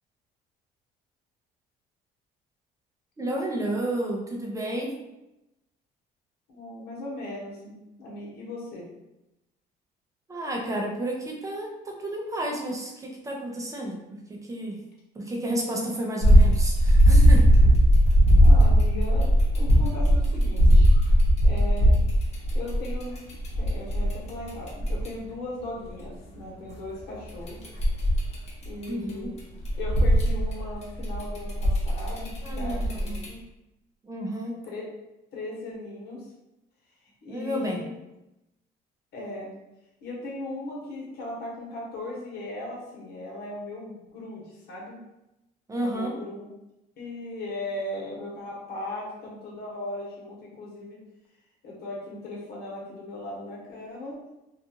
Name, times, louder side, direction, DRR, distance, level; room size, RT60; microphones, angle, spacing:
voice 1, 3.2-5.0 10.3-14.8 15.1-17.4 28.9-29.3 32.4-33.2 34.0-34.6 37.3-37.8 45.7-46.2, right 1 dB, 20° right, -1 dB, 0.5 m, -31 dB
voice 2, 6.5-8.9 17.1-17.3 18.4-20.9 21.4-21.9 22.5-27.6 28.6-29.3 29.8-33.4 34.6-34.8 35.3-36.2 37.2-37.9 39.1-39.5 40.0-45.0 45.8-46.4 47.0-51.0 51.6-54.2, left 2 dB, 70° left, -4 dB, 1.1 m, -38 dB
sound 1, 16.2-25.1 27.3-29.1 29.4-33.3, equal, 40° left, 0.9 m, -19 dB
2.6 x 2.3 x 2.7 m, 0.94 s
cardioid pair, 110°, 17 cm